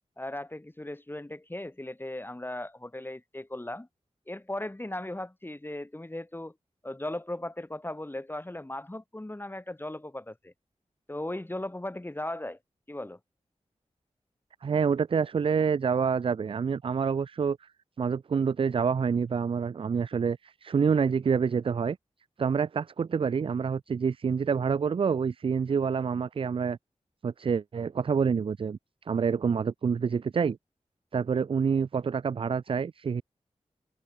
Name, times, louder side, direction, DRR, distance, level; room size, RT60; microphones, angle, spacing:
voice 1, 0.2-3.9 4.3-6.5 6.8-10.5 11.1-12.6 12.9-13.2, left 1 dB, 15° left, 3.6 m, -37 dB
voice 2, 14.6-17.6 18.0-22.0 22.4-26.8 27.2-28.8 29.1-30.6 31.1-33.2, right 6 dB, 50° right, 0.4 m, -27 dB
wide cardioid pair, 85°, 12 cm